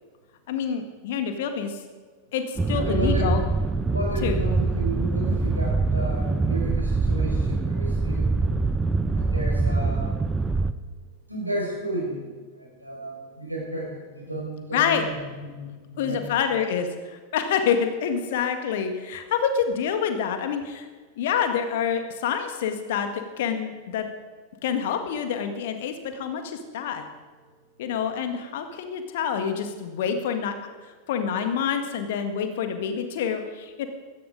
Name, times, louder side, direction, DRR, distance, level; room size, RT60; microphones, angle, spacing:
voice 1, 0.5-1.8 2.3-3.4 4.2-4.4 14.7-15.1 16.0-20.9 21.2-24.1 24.6-27.0 27.8-30.5 31.1-33.9, left 7 dB, 55° left, 7 dB, 1.8 m, -27 dB
sound 1, 2.6-10.7, right 3 dB, 15° right, 0.8 m, -24 dB
voice 2, 2.7-3.3 3.9-8.5 9.1-10.2 11.3-12.3 12.6-16.6, right 1 dB, 85° right, -3 dB, 5.5 m, -33 dB
16.0 x 13.5 x 5.2 m, 1.4 s
figure-of-eight pair, 90°, 0 cm